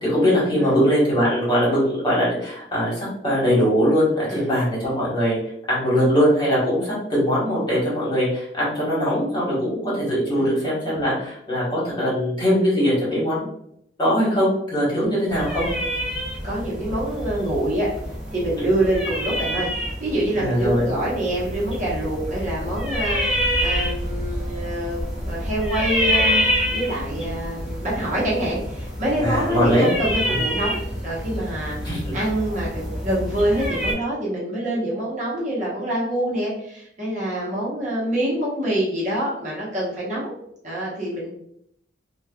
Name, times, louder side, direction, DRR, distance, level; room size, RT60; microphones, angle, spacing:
voice 1, 0.0-5.4 5.7-13.5 14.0-15.7 18.6-18.7 20.4-20.9 29.2-29.9 30.3-30.4 31.8-32.0, equal, 25° left, -8 dB, 1.3 m, -21 dB
sound 1, 15.3-33.9, equal, 5° right, 0.8 m, -27 dB
voice 2, 16.4-17.9 18.3-25.0 25.2-40.3 40.6-41.3, right 1 dB, 45° right, -6 dB, 0.9 m, -26 dB
3.1 x 2.2 x 2.3 m, 0.74 s
head